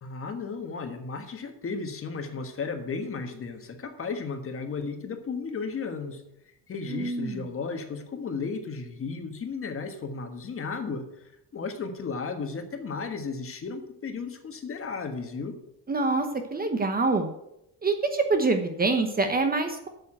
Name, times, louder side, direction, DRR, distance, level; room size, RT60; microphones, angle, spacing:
voice 1, 0.0-6.2 6.7-11.0 11.5-15.6, left 4 dB, 35° left, 6 dB, 1.5 m, -34 dB
voice 2, 6.9-7.4 15.9-16.3 16.5-17.3 17.8-19.9, right 3 dB, 20° right, 6 dB, 1.0 m, -25 dB
8.5 x 7.0 x 7.8 m, 0.82 s
cardioid pair, 135°, 39 cm